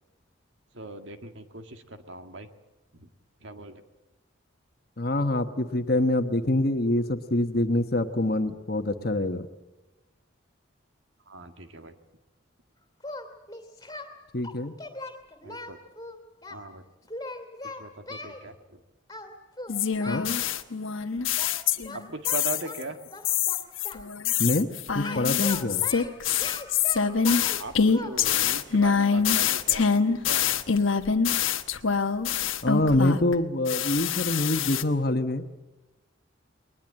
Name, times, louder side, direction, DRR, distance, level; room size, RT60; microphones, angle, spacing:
voice 1, 0.7-2.5 2.9-3.1 3.4-3.8 11.3-11.9 15.4-15.8 16.5-16.8 17.8-18.8 21.9-23.0 27.6-30.6, right 3 dB, 70° right, 7 dB, 1.9 m, -39 dB
voice 2, 5.0-9.5 14.3-14.7 20.1-20.3 24.4-24.7 24.9-25.8 32.6-35.4, left 1 dB, 50° left, 8 dB, 1.2 m, -25 dB
Singing, 13.0-14.1 14.4-16.6 17.1-18.4 19.1-19.3 19.6-20.3 21.4-21.6 21.8-24.0 25.0-27.6 27.9-28.1, left 2 dB, 15° left, 2.6 m, -39 dB
sound 1, 19.7-22.0 22.2-22.8 23.2-33.3 33.7-34.8, left 7 dB, 80° left, 1.1 m, -25 dB
21.5 x 20.0 x 8.7 m, 1.1 s
head